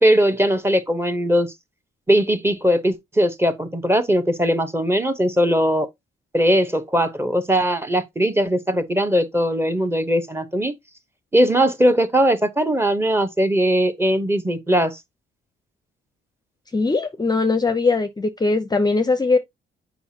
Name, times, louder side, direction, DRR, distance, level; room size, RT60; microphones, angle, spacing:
voice 1, 0.0-1.5 2.1-5.9 6.3-10.7 11.3-15.0, equal, 10° right, 1.0 m, -19 dB
voice 2, 16.7-19.4, left 3 dB, 20° left, 0.6 m, -20 dB
6.9 x 5.0 x 2.8 m
cardioid pair, 90°, 20 cm